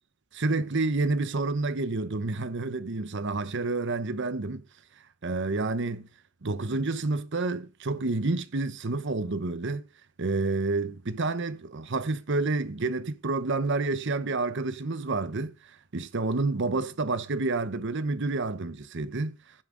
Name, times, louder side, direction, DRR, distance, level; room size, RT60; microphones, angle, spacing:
voice 1, 0.4-4.6 5.2-6.1 6.4-9.9 10.2-19.4, right 3 dB, 60° right, 0.9 m, -29 dB
15.5 x 7.3 x 3.8 m
head